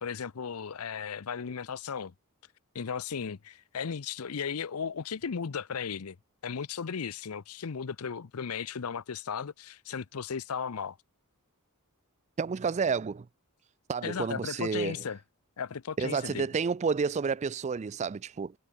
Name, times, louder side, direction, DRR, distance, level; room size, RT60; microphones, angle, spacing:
voice 1, 0.0-2.1 2.7-6.2 6.4-11.0 14.0-15.2 15.6-16.5, left 6 dB, 75° left, 0.6 m, -36 dB
voice 2, 12.4-13.3 13.9-15.0 16.0-18.5, right 5 dB, 30° right, 0.4 m, -30 dB
head